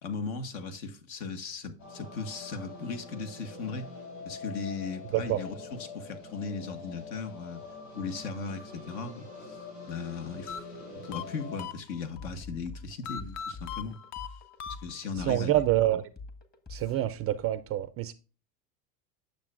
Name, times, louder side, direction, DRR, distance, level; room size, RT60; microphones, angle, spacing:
voice 1, 0.0-3.9 4.2-7.6 7.9-9.6 9.9-10.6 10.9-14.0 14.8-15.6, left 4 dB, 65° left, 1.6 m, -37 dB
sound 1, 1.8-11.7, left 3 dB, 85° left, 3.9 m, -44 dB
sound 2, 10.5-12.3 13.0-15.3, left 8 dB, 40° left, 0.6 m, -40 dB
sound 3, 12.2-17.1, left 3 dB, 20° left, 1.4 m, -45 dB
voice 2, 15.2-16.1 16.7-18.1, right 14 dB, 35° right, 0.4 m, -27 dB
9.0 x 6.7 x 2.5 m
supercardioid pair, 100°, 44 cm